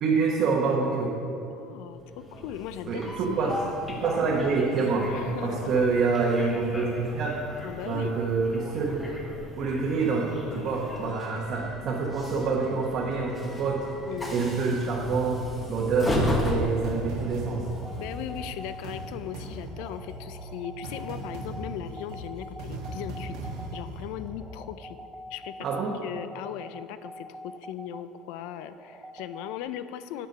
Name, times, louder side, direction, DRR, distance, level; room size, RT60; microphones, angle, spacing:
voice 1, 0.0-1.2 2.9-3.5 3.9-5.1 5.4-7.4 7.9-9.0 9.6-13.8 14.3-15.4 15.7-17.7 25.6-26.0, right 4 dB, 45° right, -3 dB, 1.2 m, -26 dB
voice 2, 1.5-3.7 5.1-5.8 7.6-8.2 14.1-14.5 15.3-15.7 18.0-23.4 23.7-25.0 25.3-30.3, left 10 dB, 75° left, 12 dB, 0.4 m, -38 dB
Train, 2.0-19.3, left 1 dB, 15° left, 1.3 m, -36 dB
sound 1, 16.1-24.3, right 1 dB, 70° right, 1.4 m, -39 dB
sound 2, 16.8-29.6, equal, 10° right, 0.6 m, -45 dB
9.2 x 6.1 x 5.5 m, 2.6 s
cardioid pair, 135°, 0 cm